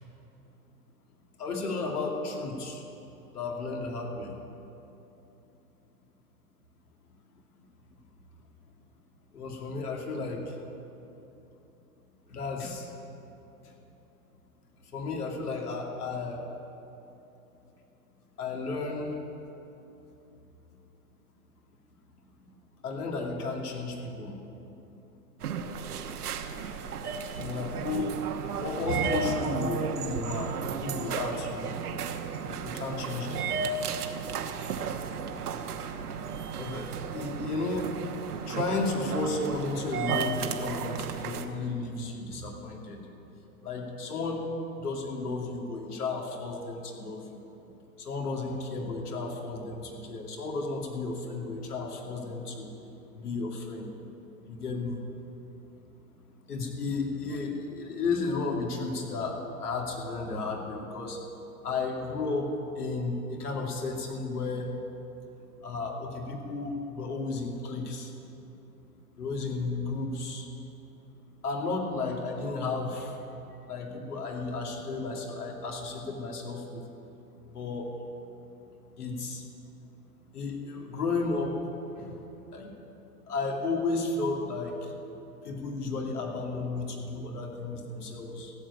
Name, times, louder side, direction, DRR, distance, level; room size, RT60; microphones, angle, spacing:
voice 1, 1.4-2.8 3.3-4.3 9.3-10.6 12.3-12.9 13.6-13.7 14.9-16.4 18.4-19.2 22.8-24.4 27.4-28.1 28.5-30.5 30.8-31.7 32.5-33.5 36.6-38.0 38.4-43.0 43.6-44.5 44.8-47.4 48.0-52.7 53.1-53.9 54.5-55.0 56.5-61.2 61.6-64.7 65.6-68.1 69.2-70.5 71.4-73.2 73.7-76.8 77.4-77.9 79.0-79.5 80.3-81.6 81.9-82.2 82.5-82.7 83.3-84.9 85.4-88.5, left 3 dB, 85° left, 0 dB, 2.6 m, -33 dB
sound 1, 25.4-41.5, right 6 dB, 85° right, 1.2 m, -34 dB
15.0 x 7.6 x 8.4 m, 2.9 s
hypercardioid pair, 130°, 45 cm